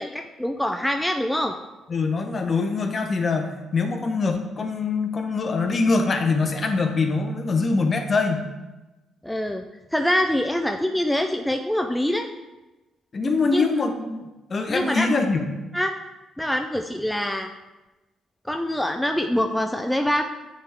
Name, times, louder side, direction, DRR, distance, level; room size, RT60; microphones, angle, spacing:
voice 1, 0.0-1.5 9.2-9.6 9.9-12.3 13.5-13.6 14.7-15.2 15.7-15.9 16.4-17.5 18.5-20.2, left 1 dB, 5° left, 5 dB, 0.4 m, -24 dB
voice 2, 1.9-8.5 13.1-15.5, left 4 dB, 40° left, 5 dB, 0.8 m, -23 dB
8.9 x 3.6 x 3.4 m, 1.1 s
cardioid pair, 90°, 0 cm